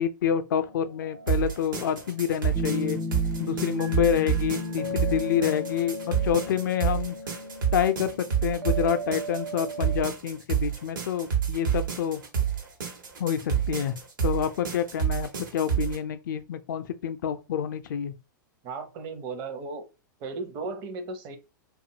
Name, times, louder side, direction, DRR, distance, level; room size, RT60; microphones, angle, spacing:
voice 1, 0.0-3.0 3.4-7.2 7.7-12.2 13.2-14.0 14.2-18.1, left 9 dB, 65° left, 0.4 m, -28 dB
sound 1, 0.5-3.3 3.8-10.0, equal, 90° right, 0.5 m, -38 dB
sound 2, 1.3-16.0, right 8 dB, 75° right, 1.0 m, -29 dB
sound 3, 2.5-6.4, left 2 dB, 10° right, 0.4 m, -34 dB
voice 2, 18.6-19.8 20.2-21.4, right 3 dB, 40° right, 0.7 m, -35 dB
2.6 x 2.4 x 2.7 m
hypercardioid pair, 100°, 11 cm